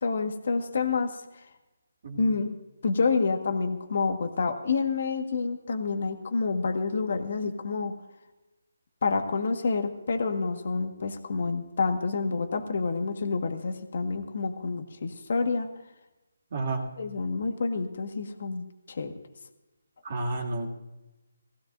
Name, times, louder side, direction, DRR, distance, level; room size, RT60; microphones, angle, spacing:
voice 1, 0.0-1.2 2.2-2.5 2.8-7.9 9.0-15.7 17.0-19.1, left 4 dB, 55° left, 7 dB, 1.6 m, -28 dB
voice 2, 16.5-16.8 20.0-20.7, right 2 dB, 45° right, 0 dB, 2.4 m, -31 dB
19.5 x 16.0 x 2.6 m, 1.0 s
hypercardioid pair, 160°, 0 cm